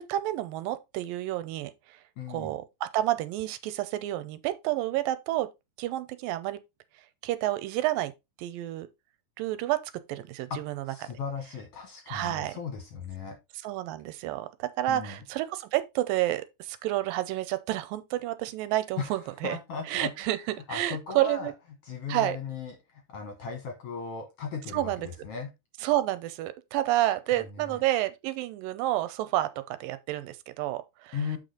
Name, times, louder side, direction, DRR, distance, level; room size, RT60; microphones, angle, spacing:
voice 1, 0.0-2.0 2.3-5.5 5.8-6.6 7.2-8.1 8.4-8.9 9.4-10.8 12.1-12.6 13.6-19.6 19.9-20.4 20.7-21.5 22.1-22.4 24.7-25.1 25.8-31.2, right 14 dB, 85° right, 2.3 m, -30 dB
voice 2, 2.2-2.5 10.5-13.4 14.9-15.2 19.0-20.1 20.7-21.5 21.9-24.9 25.2-25.5 27.5-27.8 31.1-31.4, left 5 dB, 60° left, 1.7 m, -37 dB
7.4 x 5.0 x 3.8 m
omnidirectional pair, 4.1 m